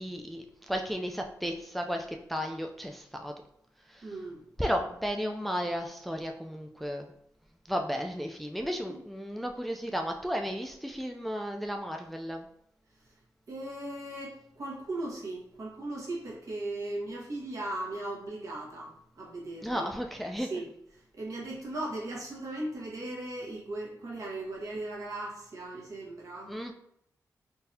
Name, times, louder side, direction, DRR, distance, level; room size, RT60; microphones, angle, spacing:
voice 1, 0.0-3.3 3.9-4.0 4.6-7.1 7.7-12.5 19.6-20.5 26.5-26.7, equal, ahead, 3 dB, 0.3 m, -34 dB
voice 2, 4.0-4.4 8.9-9.0 13.0-13.1 13.5-19.9 20.4-20.7 20.9-26.5, right 2 dB, 55° right, -4 dB, 1.2 m, -38 dB
3.8 x 2.7 x 2.6 m, 0.76 s
wide cardioid pair, 110°, 7 cm